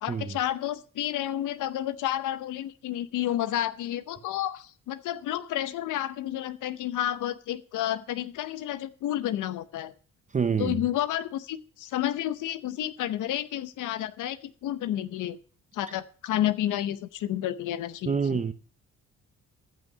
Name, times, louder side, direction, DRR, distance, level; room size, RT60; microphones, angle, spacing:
voice 1, 0.0-9.9 10.6-15.4 15.7-18.4, left 12 dB, 80° left, 0.8 m, -30 dB
voice 2, 10.3-10.8 18.1-18.5, right 6 dB, 25° right, 0.6 m, -27 dB
14.0 x 6.2 x 6.6 m
cardioid pair, 90°, 30 cm